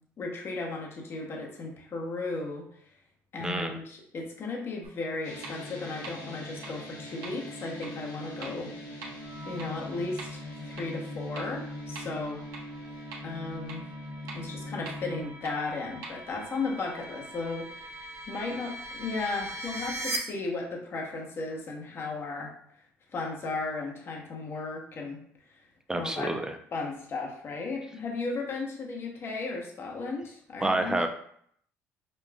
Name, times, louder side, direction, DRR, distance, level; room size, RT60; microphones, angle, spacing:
voice 1, 0.2-2.7 3.3-8.7 9.4-12.4 13.2-13.9 14.3-22.5 23.1-25.2 25.5-25.6 25.9-26.3 26.7-31.0, left 3 dB, 45° left, 0 dB, 0.9 m, -35 dB
voice 2, 3.4-3.8 25.9-26.5 30.6-31.1, right 2 dB, 10° right, 6 dB, 0.5 m, -28 dB
sound 1, 4.8-4.9 5.4-5.5 6.0-6.1 6.6-6.7 7.2-7.3 7.8-7.9 8.4-8.5 9.0-9.1 9.6-9.7 10.2-10.3 10.8-10.9 11.4-11.5 11.9-12.0 12.5-12.6 13.1-13.2 13.7-13.8 14.3-14.4 14.9-15.0 15.4-15.5 16.0-16.1, right 4 dB, 80° right, 0.9 m, -41 dB
sound 2, 5.2-15.3, left 1 dB, 75° left, 1.0 m, -41 dB
sound 3, 9.2-20.2, right 2 dB, 50° right, 0.7 m, -43 dB
5.2 x 2.3 x 2.3 m, 0.64 s
supercardioid pair, 85°, 6 cm